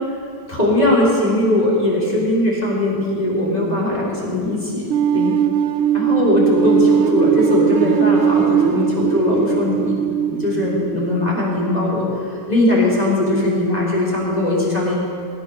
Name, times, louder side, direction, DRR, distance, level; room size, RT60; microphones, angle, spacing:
voice 1, 0.5-5.3 5.9-9.9 10.3-15.0, left 1 dB, 20° left, -6 dB, 3.5 m, -19 dB
sound 1, 4.9-11.8, right 8 dB, 65° right, 0.8 m, -19 dB
17.0 x 9.3 x 6.5 m, 2.3 s
omnidirectional pair, 1.9 m